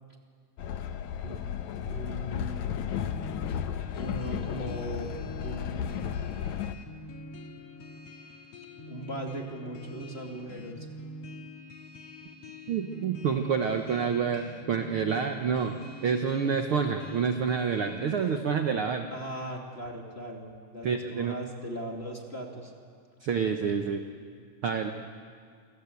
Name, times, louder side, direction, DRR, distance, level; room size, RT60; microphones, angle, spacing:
Train, 0.6-6.7, left 9 dB, 70° left, 2.1 m, -34 dB
voice 1, 1.9-2.6 3.9-5.1 5.4-6.1 8.9-10.9 19.1-22.7, equal, 20° left, 1 dB, 2.1 m, -38 dB
sound 1, 3.0-18.4, left 1 dB, 50° left, 2.5 m, -46 dB
voice 2, 12.7-15.8 16.0-19.1 20.8-21.4 23.2-24.0 24.6-24.9, right 6 dB, 60° right, 5 dB, 1.4 m, -28 dB
28.0 x 24.0 x 8.4 m, 2.1 s
omnidirectional pair, 3.9 m